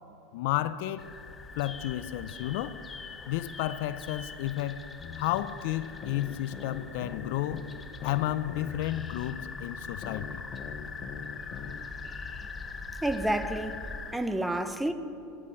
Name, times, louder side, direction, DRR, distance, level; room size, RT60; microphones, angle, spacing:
voice 1, 0.3-1.1 1.5-2.8 3.3-4.9 5.2-7.6 8.0-10.4, left 14 dB, 70° left, 0.4 m, -32 dB
sound 1, 1.0-14.1, left 4 dB, 20° left, 0.8 m, -42 dB
sound 2, 5.0-5.5 6.0-9.5 10.0-11.8, left 7 dB, 45° left, 0.8 m, -42 dB
voice 2, 13.0-14.9, right 1 dB, 5° right, 0.7 m, -30 dB
14.5 x 10.0 x 4.3 m
hypercardioid pair, 100°, 0 cm